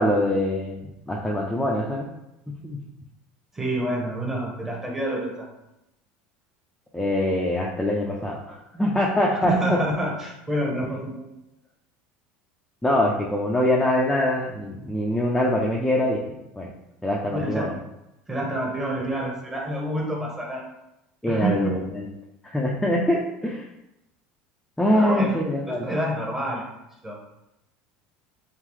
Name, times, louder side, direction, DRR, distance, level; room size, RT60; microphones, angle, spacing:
voice 1, 0.0-2.1 2.6-2.8 6.9-9.8 12.8-16.2 16.5-16.7 17.0-17.7 21.2-22.1 22.4-23.6 24.8-25.9, left 1 dB, 5° left, -3 dB, 0.4 m, -24 dB
voice 2, 3.5-5.5 9.5-11.3 17.3-17.7 18.3-20.6 21.3-21.7 24.9-25.4 25.7-26.6 27.0-27.1, right 1 dB, 10° right, -1 dB, 0.9 m, -28 dB
3.8 x 3.7 x 3.1 m, 0.89 s
cardioid pair, 155°, 4 cm